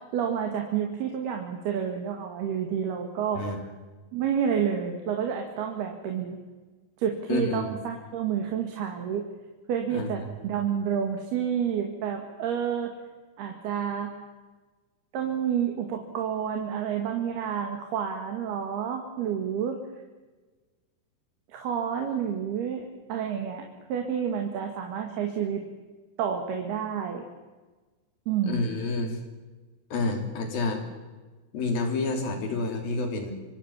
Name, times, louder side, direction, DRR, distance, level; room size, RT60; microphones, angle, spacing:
voice 1, 0.0-3.4 4.1-6.4 7.0-9.3 9.7-12.9 13.4-14.1 15.1-19.8 21.5-25.6 26.2-27.3 28.3-28.6, right 8 dB, 75° right, 3 dB, 4.2 m, -29 dB
voice 2, 7.3-7.7 9.9-10.4 28.4-29.2 29.9-30.8 31.5-33.3, left 3 dB, 60° left, 5 dB, 5.0 m, -29 dB
26.0 x 25.5 x 7.4 m, 1.3 s
omnidirectional pair, 4.7 m